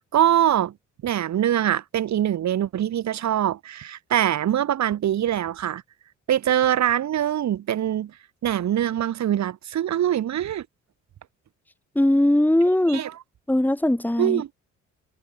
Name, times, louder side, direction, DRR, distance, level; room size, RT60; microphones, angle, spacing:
voice 1, 0.1-0.7 1.0-5.8 6.3-8.1 8.4-10.7 12.9-13.1 14.2-14.5, right 11 dB, 65° right, 2.2 m, -23 dB
voice 2, 11.9-13.0 13.5-14.4, left 1 dB, 5° left, 3.4 m, -20 dB
cardioid pair, 90°, 30 cm